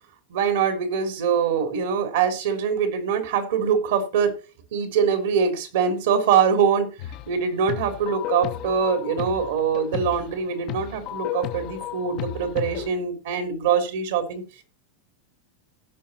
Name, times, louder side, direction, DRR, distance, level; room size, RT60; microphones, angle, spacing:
voice 1, 0.3-4.3 4.7-6.9 7.3-14.4, right 7 dB, 70° right, 8 dB, 3.2 m, -23 dB
sound 1, 7.0-7.4 7.7-12.9, left 13 dB, 50° left, 1.0 m, -33 dB
16.5 x 5.6 x 4.2 m, 0.31 s
hypercardioid pair, 100°, 0 cm